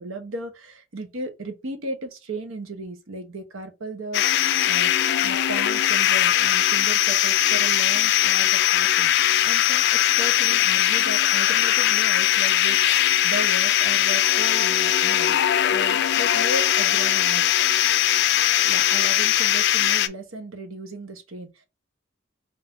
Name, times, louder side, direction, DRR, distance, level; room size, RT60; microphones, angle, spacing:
voice 1, 0.0-4.9 5.2-9.1 9.4-15.4 15.7-17.4 18.6-21.7, right 2 dB, 90° right, 0.9 m, -35 dB
sound 1, 4.1-20.1, left 12 dB, 55° left, 0.4 m, -20 dB
3.6 x 2.7 x 3.7 m
head